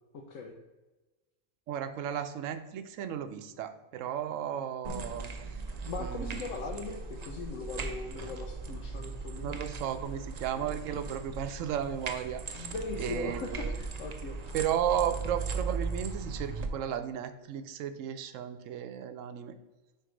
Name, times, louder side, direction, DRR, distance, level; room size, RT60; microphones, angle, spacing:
voice 1, 0.1-0.5 5.9-9.6 12.6-14.6, left 3 dB, 80° left, 2 dB, 1.0 m, -39 dB
voice 2, 1.7-5.6 6.0-6.4 9.4-13.7 14.5-19.5, right 9 dB, 85° right, 10 dB, 0.9 m, -34 dB
sound 1, 4.8-16.7, right 4 dB, 50° right, 0.5 m, -38 dB
4.6 x 4.5 x 4.9 m, 1.1 s
omnidirectional pair, 1.3 m